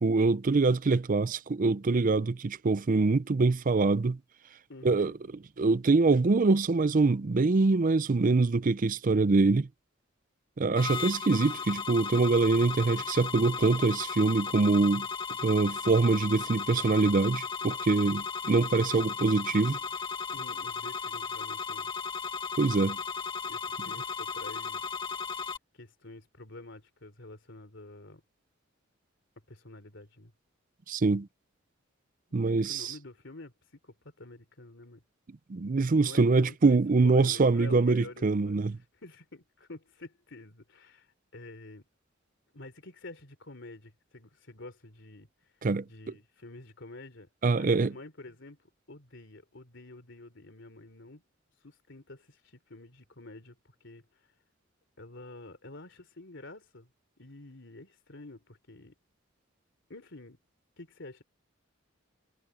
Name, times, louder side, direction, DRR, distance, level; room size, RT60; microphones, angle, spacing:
voice 1, 0.0-4.2 4.8-5.1 5.6-9.7 10.6-15.1 15.4-19.8 22.6-23.0 30.9-31.3 32.3-32.9 35.5-38.8 45.6-45.8 47.4-47.9, right 3 dB, 40° right, 0.5 m, -24 dB
voice 2, 4.7-5.2 20.3-21.9 23.5-24.8 25.7-28.2 29.5-30.3 32.5-33.5 33.8-35.0 36.0-36.8 37.0-38.6 39.0-41.1 41.3-41.8 42.5-45.3 45.9-47.3 47.6-48.6 48.9-51.2 51.6-54.0 55.0-56.9 57.2-58.9 59.9-60.4 60.8-61.2, left 2 dB, 65° left, 3.4 m, -48 dB
sound 1, 10.8-25.6, left 5 dB, 25° left, 1.2 m, -36 dB
head